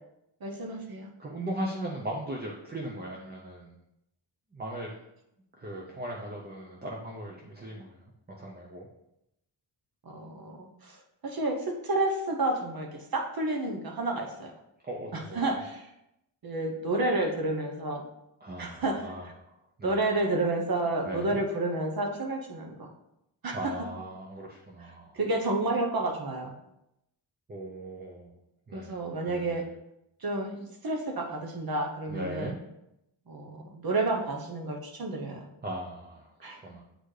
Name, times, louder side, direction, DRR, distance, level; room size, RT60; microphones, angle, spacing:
voice 1, 0.4-1.1 10.0-11.0 11.2-14.5 15.1-15.9 16.4-18.0 18.6-19.1 19.8-22.9 23.4-23.6 25.1-26.5 28.7-29.6 30.2-32.5 33.3-35.4 36.4-36.6, right 2 dB, 50° right, 2 dB, 0.9 m, -30 dB
voice 2, 1.2-3.7 4.5-4.9 5.6-8.0 8.3-8.9 14.8-15.5 18.4-19.5 19.8-20.0 21.0-21.4 23.5-25.2 27.5-28.3 28.7-29.0 29.2-29.6 32.1-32.6 35.6-36.8, right 1 dB, 20° right, -1 dB, 0.7 m, -38 dB
8.0 x 4.1 x 3.2 m, 0.84 s
wide cardioid pair, 135°, 47 cm